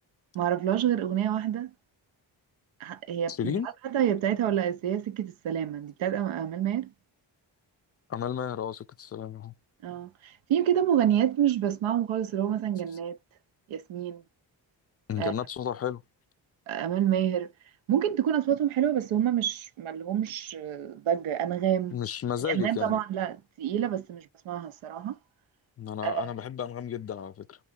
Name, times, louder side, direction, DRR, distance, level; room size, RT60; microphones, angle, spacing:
voice 1, 0.3-1.7 2.8-6.9 9.8-13.2 13.7-14.2 15.2-15.3 16.7-17.5 17.9-22.0 22.4-25.2 26.0-26.3, right 10 dB, 80° right, 0.6 m, -28 dB
voice 2, 3.3-3.7 8.1-9.5 15.1-16.0 21.9-23.0 25.8-27.6, left 9 dB, 35° left, 0.4 m, -33 dB
2.8 x 2.4 x 3.4 m
cardioid pair, 50°, 47 cm